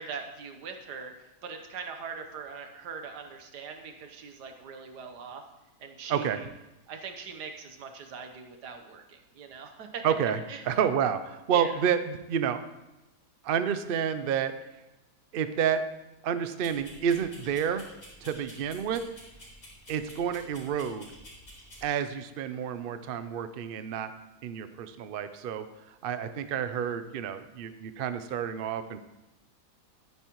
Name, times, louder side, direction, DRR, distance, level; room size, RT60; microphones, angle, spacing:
voice 1, 0.0-5.4 5.8-6.5 6.9-10.0 10.5-10.6 11.5-11.8, right 5 dB, 90° right, 5 dB, 1.6 m, -41 dB
voice 2, 10.0-10.4 10.6-12.6 13.4-14.5 15.3-15.8 16.2-17.8 18.2-19.0 19.9-21.1 21.8-24.1 24.4-25.6 26.0-29.0, right 8 dB, 65° right, 10 dB, 0.5 m, -29 dB
sound 1, 16.6-21.9, equal, 50° left, 4.3 m, -50 dB
12.5 x 9.8 x 3.0 m, 0.99 s
omnidirectional pair, 1.7 m